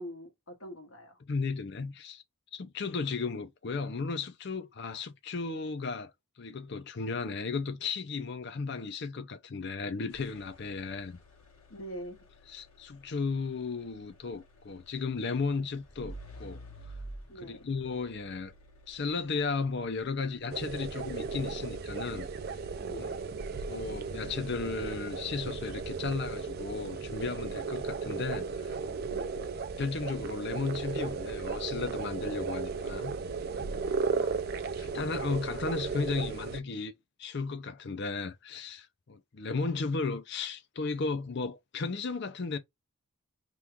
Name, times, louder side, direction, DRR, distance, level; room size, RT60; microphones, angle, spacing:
voice 1, 0.0-1.2 11.7-12.2 17.3-17.6 22.8-23.2 29.1-29.5 33.7-34.4, equal, 65° left, 1.4 m, -44 dB
voice 2, 1.3-2.2 2.5-6.1 6.4-11.2 12.5-16.6 17.4-18.5 18.9-22.3 23.0-23.1 23.7-28.7 29.8-33.1 34.8-36.9 37.2-42.6, left 4 dB, 50° left, 0.5 m, -34 dB
sound 1, 10.1-28.4, right 1 dB, 80° left, 1.3 m, -53 dB
sound 2, 20.5-36.6, right 4 dB, 45° right, 0.4 m, -35 dB
3.1 x 2.4 x 3.5 m
head